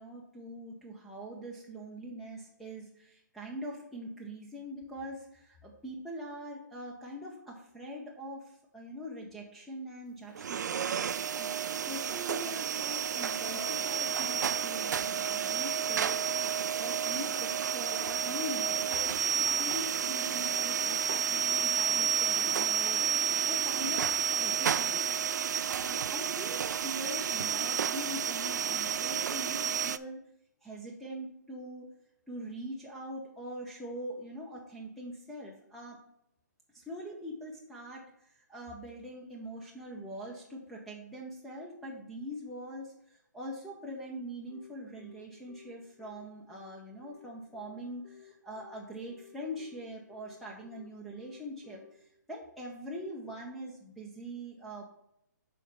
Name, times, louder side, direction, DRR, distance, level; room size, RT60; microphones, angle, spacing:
voice 1, 0.0-10.8 11.3-24.1 24.4-25.1 25.7-30.2 30.6-31.9 32.3-36.0 36.7-54.9, equal, ahead, -6 dB, 0.6 m, -43 dB
sound 1, 10.3-30.0, right 7 dB, 65° right, 0.3 m, -31 dB
Bowed string instrument, 13.4-19.1, left 8 dB, 65° left, 0.9 m, -55 dB
Telephone, 44.5-51.9, left 10 dB, 25° left, 1.1 m, -56 dB
6.3 x 4.1 x 5.4 m, 0.79 s
hypercardioid pair, 160°, 10 cm